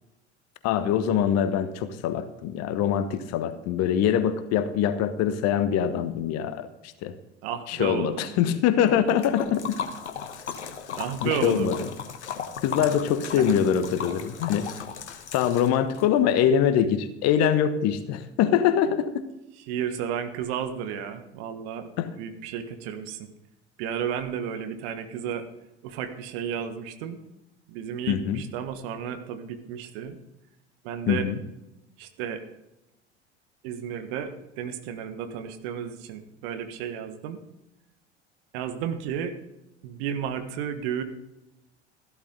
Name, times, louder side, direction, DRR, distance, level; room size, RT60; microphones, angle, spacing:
voice 1, 0.6-7.1 7.7-9.8 11.2-11.8 12.6-14.7 15.3-19.2 22.0-22.1 28.1-28.4 31.1-31.4, left 9 dB, 45° left, 12 dB, 1.2 m, -24 dB
voice 2, 7.4-8.4 11.0-11.8 13.3-13.4 19.6-21.9 22.2-23.3 23.8-25.5 25.8-27.2 27.7-30.2 30.8-31.3 32.0-32.4 33.6-37.4 38.5-39.3 39.8-41.0, right 8 dB, 60° right, 9 dB, 1.5 m, -32 dB
Liquid, 8.9-16.0, left 7 dB, 75° left, 1.3 m, -36 dB
14.0 x 12.5 x 3.9 m, 0.93 s
figure-of-eight pair, 70°, 35 cm